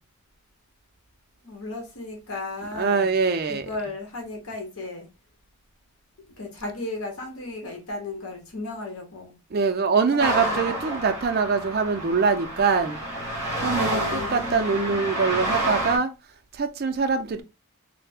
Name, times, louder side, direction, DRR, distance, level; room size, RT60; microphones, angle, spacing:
voice 1, 1.4-3.1 3.5-5.1 6.3-9.4 10.1-10.6 13.8-15.2 17.3-17.4, left 2 dB, 85° left, 1.0 m, -35 dB
voice 2, 2.7-3.7 9.5-13.0 13.6-16.1 16.5-17.4, right 5 dB, 45° right, 0.4 m, -23 dB
sound 1, 10.2-16.0, right 1 dB, 15° left, 1.1 m, -29 dB
3.2 x 2.0 x 3.4 m
head